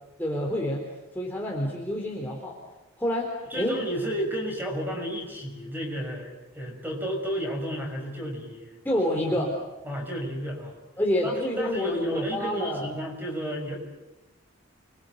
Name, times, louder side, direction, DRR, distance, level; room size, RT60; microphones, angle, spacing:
voice 1, 0.2-0.8 1.1-2.6 3.0-3.8 8.8-9.5 11.0-12.9, left 1 dB, 10° left, -2 dB, 3.9 m, -28 dB
voice 2, 3.5-8.8 9.1-9.4 9.8-10.8 11.2-13.8, equal, 10° right, 2 dB, 6.2 m, -32 dB
29.5 x 23.5 x 8.2 m, 0.99 s
head